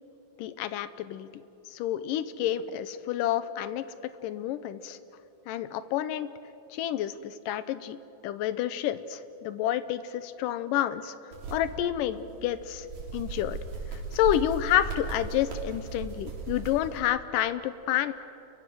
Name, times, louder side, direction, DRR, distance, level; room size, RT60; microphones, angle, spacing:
voice 1, 0.4-1.3 1.7-3.9 4.2-5.0 5.5-6.3 6.7-8.0 8.2-11.2 11.5-12.9 13.1-13.6 13.9-18.1, left 11 dB, 75° left, 13 dB, 2.1 m, -29 dB
sound 1, 11.3-17.0, right 4 dB, 75° right, 5.0 m, -38 dB
29.5 x 23.5 x 6.3 m, 2.8 s
omnidirectional pair, 4.4 m